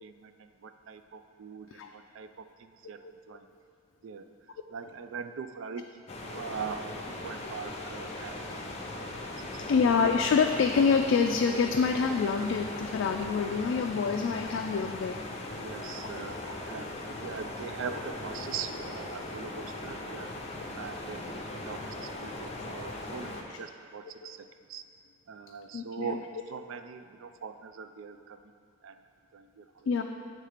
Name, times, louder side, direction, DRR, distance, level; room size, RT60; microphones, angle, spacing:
voice 1, 0.0-3.5 4.0-4.3 4.7-9.8 15.6-16.4 16.7-20.3 20.8-24.8 25.3-26.2 26.5-28.5 28.8-29.0 29.3-30.0, right 6 dB, 90° right, 9 dB, 0.4 m, -42 dB
sound 1, 6.1-23.4, left 2 dB, 35° left, 0.6 m, -39 dB
voice 2, 9.6-15.2 16.3-16.6 17.9-18.0 20.1-20.3 20.7-20.8 23.5-23.6 24.2-24.3 25.7-26.2 29.9-30.0, left 5 dB, 75° left, 4 dB, 0.3 m, -27 dB
7.9 x 3.3 x 5.0 m, 2.2 s
head